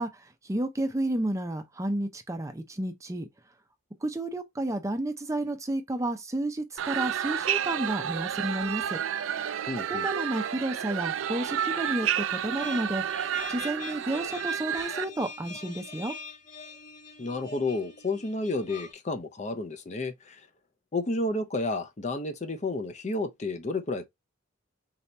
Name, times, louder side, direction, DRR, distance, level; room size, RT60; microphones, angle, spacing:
voice 1, 0.0-3.3 4.0-9.0 9.9-13.0 13.5-16.1, right 1 dB, 15° right, 0.5 m, -31 dB
sound 1, 6.8-15.0, right 9 dB, 85° right, 0.4 m, -30 dB
voice 2, 9.7-10.1 17.2-20.5 20.9-24.1, left 2 dB, 35° left, 0.5 m, -31 dB
sound 2, 12.5-18.9, left 4 dB, 20° left, 1.2 m, -44 dB
4.0 x 2.9 x 3.2 m
head